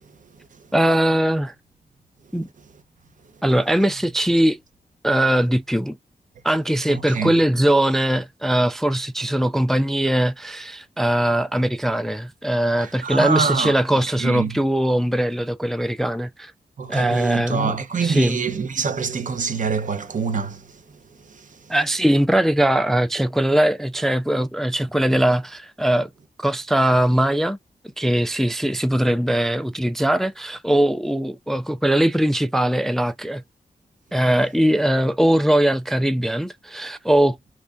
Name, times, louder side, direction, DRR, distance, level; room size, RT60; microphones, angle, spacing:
voice 1, 0.7-1.5 2.3-2.5 3.4-4.6 5.0-6.0 6.4-16.5 16.9-17.7 18.0-18.4 21.7-26.1 26.4-27.6 28.0-33.4 34.1-37.4, right 1 dB, ahead, 0.3 m, -20 dB
voice 2, 6.9-7.3 12.8-13.8 14.2-14.5 16.8-20.8 21.3-21.5, right 5 dB, 60° right, 0.7 m, -25 dB
3.1 x 2.4 x 3.7 m
wide cardioid pair, 100°, 15 cm